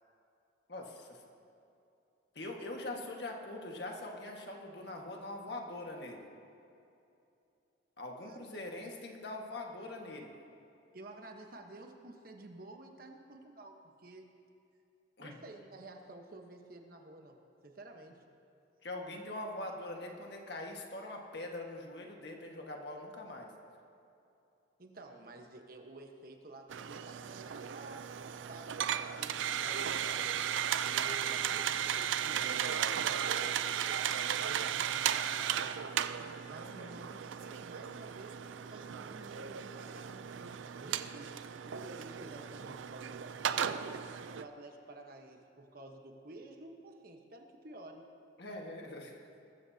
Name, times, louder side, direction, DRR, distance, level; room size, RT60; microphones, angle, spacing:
voice 1, 0.7-1.2 2.3-6.2 8.0-10.3 15.2-15.3 18.8-23.5 36.6-37.0 48.4-49.3, left 2 dB, 60° left, 0 dB, 1.7 m, -43 dB
voice 2, 8.1-8.5 10.9-14.3 15.2-18.2 24.8-30.3 30.8-35.7 36.4-41.3 41.7-48.0, right 2 dB, 50° right, 3 dB, 1.2 m, -52 dB
sound 1, 26.7-44.4, right 9 dB, 85° right, 0.5 m, -35 dB
21.0 x 14.0 x 2.8 m, 2.7 s
head